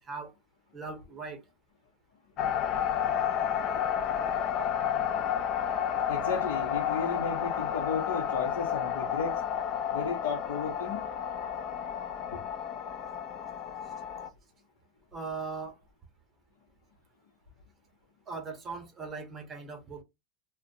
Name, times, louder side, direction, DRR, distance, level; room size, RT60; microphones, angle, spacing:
voice 1, 0.7-1.4 15.1-15.8 18.3-20.0, right 4 dB, 25° right, 0.8 m, -39 dB
sound 1, 2.4-14.3, left 9 dB, 45° left, 0.3 m, -31 dB
voice 2, 6.1-9.4 9.9-11.1 12.3-12.4, left 5 dB, 85° left, 0.7 m, -34 dB
2.5 x 2.1 x 2.6 m
supercardioid pair, 120°, 0 cm